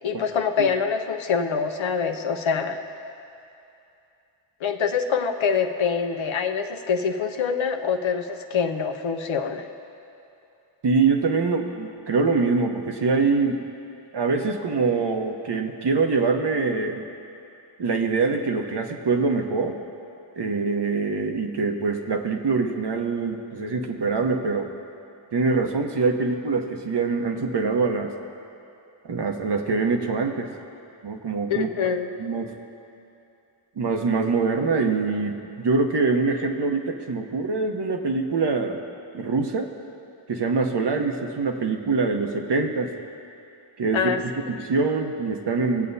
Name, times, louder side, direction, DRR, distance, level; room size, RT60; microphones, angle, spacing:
voice 1, 0.0-2.8 4.6-9.7 31.5-32.1 43.9-44.2, left 6 dB, 70° left, 5 dB, 0.8 m, -25 dB
voice 2, 10.8-13.6 14.1-17.1 17.8-19.8 20.4-24.7 25.3-28.1 29.0-30.5 31.0-31.7 32.2-32.5 33.8-38.8 39.1-39.7 40.3-42.9 43.8-44.1 44.5-45.9, right 4 dB, 55° right, 3 dB, 1.0 m, -24 dB
19.5 x 7.5 x 2.7 m, 2.7 s
cardioid pair, 45°, 49 cm